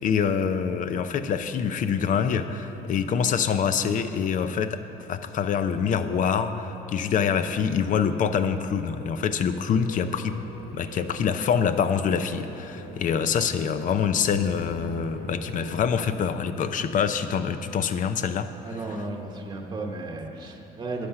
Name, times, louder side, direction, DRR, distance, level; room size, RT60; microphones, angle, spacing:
voice 1, 0.0-4.8 5.1-10.3 10.7-18.5, left 7 dB, 50° left, 10 dB, 0.5 m, -25 dB
sound 1, 6.0-16.2, left 2 dB, 70° left, 2.1 m, -45 dB
voice 2, 18.6-21.1, right 2 dB, 25° right, 1 dB, 1.0 m, -34 dB
11.5 x 6.5 x 5.8 m, 3.0 s
cardioid pair, 110°, 17 cm